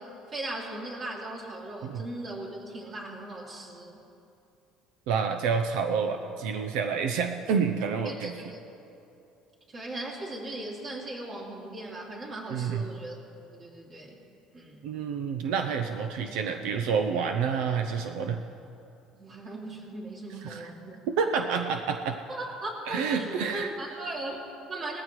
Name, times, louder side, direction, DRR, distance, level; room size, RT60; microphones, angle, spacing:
voice 1, 0.0-4.0 8.0-8.6 9.7-13.2 13.5-14.2 14.5-14.8 19.1-21.0 22.3-25.0, right 2 dB, 30° right, -2 dB, 2.6 m, -38 dB
voice 2, 5.1-8.3 12.5-12.8 14.8-18.4 20.4-20.7 21.2-22.2 22.9-23.7, right 6 dB, 80° right, 5 dB, 0.7 m, -28 dB
19.5 x 15.0 x 3.2 m, 2.7 s
cardioid pair, 135°, 0 cm